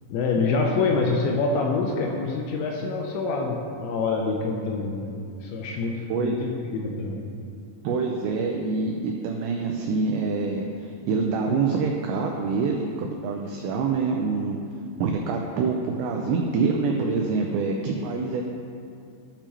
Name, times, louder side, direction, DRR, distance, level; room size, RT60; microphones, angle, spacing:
voice 1, 0.1-7.2, left 3 dB, 80° left, 1 dB, 2.8 m, -26 dB
voice 2, 7.8-14.6 15.0-18.4, right 4 dB, 90° right, 1 dB, 2.4 m, -26 dB
13.5 x 6.8 x 3.0 m, 2.5 s
omnidirectional pair, 5.7 m